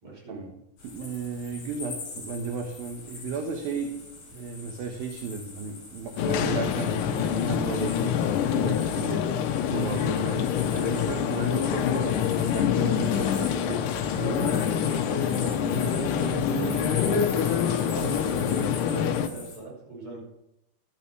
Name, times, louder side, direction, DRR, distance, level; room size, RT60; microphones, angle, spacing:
voice 1, 0.0-0.4 10.0-10.3 15.2-20.2, right 3 dB, 30° right, -3 dB, 5.8 m, -37 dB
sound 1, 0.8-19.6, left 4 dB, 40° left, 4.9 m, -43 dB
voice 2, 0.8-8.3 8.5-9.2 9.7-14.7, right 4 dB, 70° right, 3 dB, 2.7 m, -34 dB
sound 2, 6.2-19.3, left 8 dB, 80° left, 1.9 m, -26 dB
12.0 x 12.0 x 4.6 m, 0.85 s
omnidirectional pair, 4.8 m